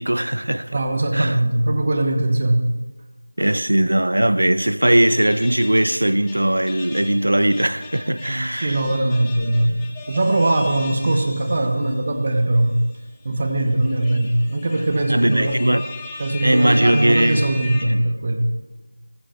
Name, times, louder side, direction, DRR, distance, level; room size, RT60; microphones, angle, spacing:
voice 1, 0.0-0.7 1.1-1.4 3.4-8.8 15.1-15.8 16.4-17.4 17.9-18.0, right 1 dB, 65° right, 0.7 m, -19 dB
voice 2, 0.7-2.6 8.5-12.8 13.2-15.7 16.2-18.5, right 1 dB, 20° right, 1.0 m, -21 dB
sound 1, 5.0-11.9 12.4-12.5 13.5-17.8, left 3 dB, 5° left, 0.6 m, -38 dB
19.5 x 14.0 x 4.4 m
figure-of-eight pair, 180°, 0 cm